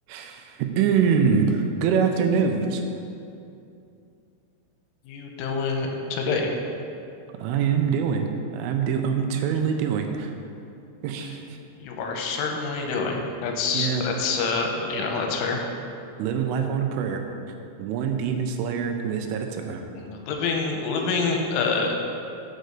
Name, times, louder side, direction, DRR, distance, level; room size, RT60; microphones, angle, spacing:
voice 1, 0.1-2.8 7.4-10.3 11.0-11.6 13.7-14.0 16.2-17.2 17.8-19.8, right 6 dB, 85° right, 4 dB, 3.1 m, -24 dB
voice 2, 5.1-6.5 11.8-15.6 19.9-21.9, left 4 dB, 90° left, 2 dB, 3.2 m, -26 dB
7.6 x 5.4 x 6.6 m, 2.6 s
omnidirectional pair, 5.6 m